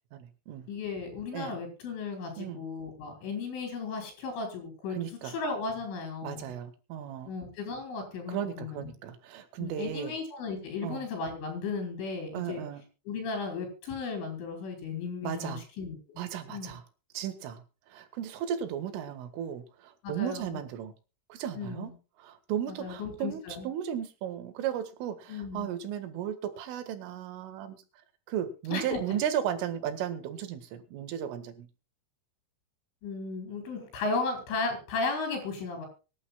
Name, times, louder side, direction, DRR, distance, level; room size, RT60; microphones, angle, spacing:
voice 1, 0.1-0.7 1.3-1.6 2.4-2.6 4.9-5.3 6.2-7.3 8.3-10.1 10.8-11.1 12.3-12.8 15.2-15.6 16.2-16.8 17.1-17.6 17.9-20.9 21.3-21.9 22.2-23.4 23.7-27.8 28.3-31.7, right 9 dB, 80° right, 10 dB, 4.2 m, -35 dB
voice 2, 0.7-6.5 7.3-8.9 9.6-12.6 13.1-16.2 16.5-16.7 20.0-20.6 21.6-21.9 22.7-23.7 25.3-25.7 28.7-29.0 33.0-35.9, left 4 dB, 70° left, 4 dB, 7.4 m, -35 dB
24.0 x 11.5 x 2.3 m, 0.33 s
omnidirectional pair, 5.8 m